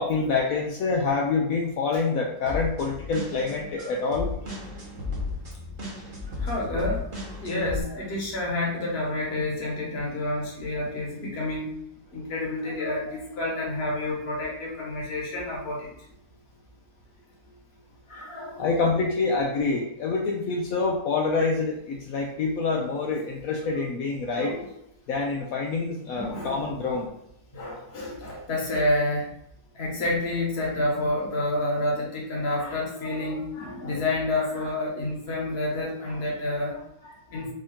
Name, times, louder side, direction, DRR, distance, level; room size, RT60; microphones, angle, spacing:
voice 1, 0.0-4.3 18.6-24.5 25.1-27.1, left 4 dB, 70° left, 0 dB, 1.0 m, -26 dB
sound 1, 2.5-7.8, left 3 dB, 35° right, 1.1 m, -34 dB
voice 2, 6.3-11.8 12.1-15.9 18.1-18.9 24.3-24.7 26.1-26.7 27.5-29.3 29.7-37.5, left 1 dB, 40° left, -2 dB, 1.5 m, -29 dB
5.2 x 2.7 x 3.6 m, 0.77 s
omnidirectional pair, 1.7 m